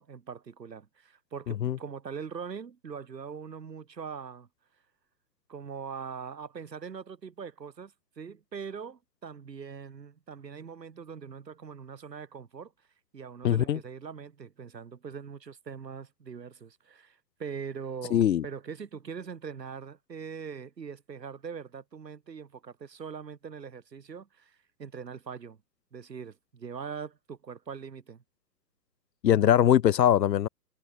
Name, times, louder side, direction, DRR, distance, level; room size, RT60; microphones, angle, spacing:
voice 1, 0.0-4.5 5.5-12.7 13.1-25.6 25.9-28.2, right 6 dB, 85° right, 1.6 m, -42 dB
voice 2, 1.5-1.8 13.4-13.8 18.1-18.5 29.2-30.5, left 10 dB, 80° left, 0.7 m, -22 dB
figure-of-eight pair, 130°, 49 cm